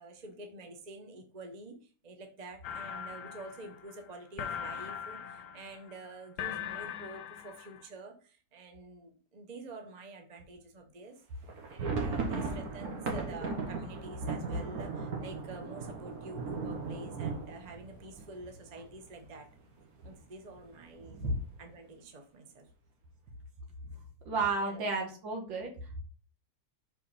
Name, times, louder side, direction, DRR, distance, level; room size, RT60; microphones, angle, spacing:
voice 1, 0.0-11.2 11.7-19.5 20.0-21.2 21.6-22.7 24.6-24.8, right 2 dB, 35° right, 4 dB, 0.7 m, -48 dB
sound 1, 2.6-7.9, left 9 dB, 65° left, 1.1 m, -41 dB
sound 2, 11.4-19.2 19.5-19.6 19.9-20.1 20.6-21.1, right 4 dB, 50° right, 1.5 m, -37 dB
voice 2, 24.3-25.7, right 3 dB, 70° right, 2 dB, 2.1 m, -32 dB
5.6 x 4.7 x 4.2 m, 0.40 s
omnidirectional pair, 2.2 m